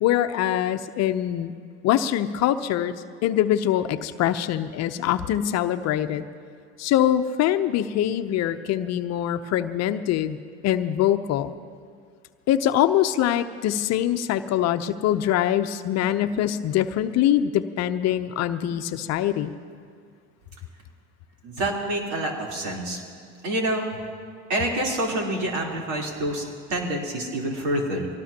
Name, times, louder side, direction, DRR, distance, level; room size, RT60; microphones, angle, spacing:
voice 1, 0.0-1.5 1.8-2.9 3.2-6.3 6.8-10.4 10.6-11.5 12.5-19.5, left 11 dB, 50° left, 10 dB, 0.8 m, -23 dB
voice 2, 21.4-23.0 23.4-23.8 24.5-28.1, right 1 dB, 60° right, -1 dB, 3.7 m, -27 dB
24.0 x 18.5 x 2.9 m, 2.2 s
hypercardioid pair, 85°, 33 cm